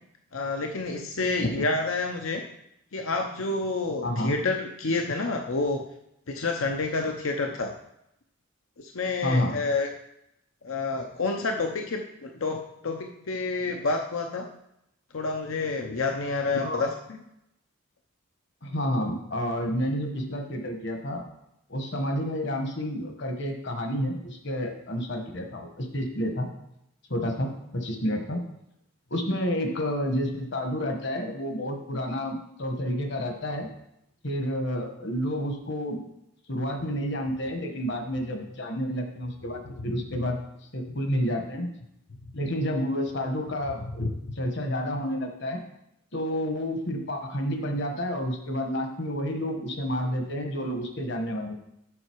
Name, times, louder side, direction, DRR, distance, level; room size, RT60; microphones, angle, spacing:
voice 1, 0.3-2.4 2.9-5.8 6.3-7.7 8.8-9.9 10.6-14.5 15.1-17.2 44.0-44.1, left 3 dB, 70° left, 3 dB, 0.7 m, -29 dB
voice 2, 4.0-4.4 9.2-9.5 16.6-16.8 18.6-21.2 21.7-26.5 27.1-28.4 29.1-33.7 34.2-36.0 36.5-40.4 40.7-41.7 42.3-44.1 44.3-45.6 46.1-51.5, equal, 55° left, 4 dB, 1.3 m, -30 dB
7.8 x 6.6 x 4.6 m, 0.81 s
head